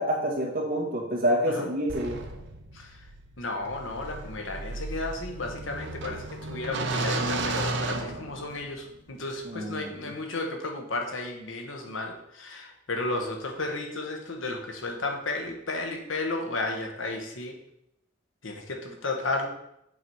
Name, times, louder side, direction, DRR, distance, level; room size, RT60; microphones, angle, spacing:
voice 1, 0.0-2.2 9.4-10.1, equal, 50° right, -3 dB, 1.9 m, -28 dB
sound 1, 1.9-8.8, right 2 dB, 65° right, 0.7 m, -34 dB
voice 2, 3.4-17.6 18.4-19.5, left 2 dB, 80° left, 3 dB, 1.2 m, -33 dB
7.5 x 4.2 x 4.6 m, 0.79 s
head